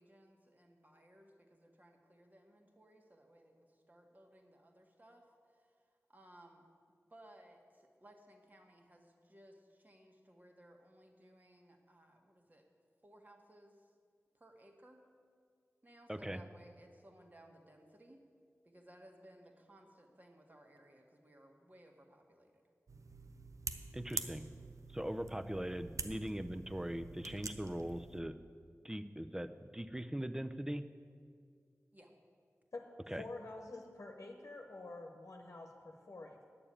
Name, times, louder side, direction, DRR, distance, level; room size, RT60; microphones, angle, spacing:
voice 1, 0.0-5.7 6.1-6.6 7.1-12.7 13.0-14.0 14.3-15.1 15.8-18.3 18.6-22.7 31.9-32.1, right 1 dB, 30° right, 2 dB, 1.6 m, -61 dB
voice 2, 16.1-16.4 23.9-24.5 24.9-28.3 28.8-30.8 33.1-33.2, right 1 dB, 10° right, 10 dB, 0.5 m, -40 dB
sound 1, 22.9-28.2, right 3 dB, 75° right, 0.6 m, -46 dB
voice 3, 33.1-36.5, left 2 dB, 65° left, 2 dB, 1.0 m, -48 dB
9.8 x 6.9 x 8.8 m, 2.1 s
wide cardioid pair, 65°, 6 cm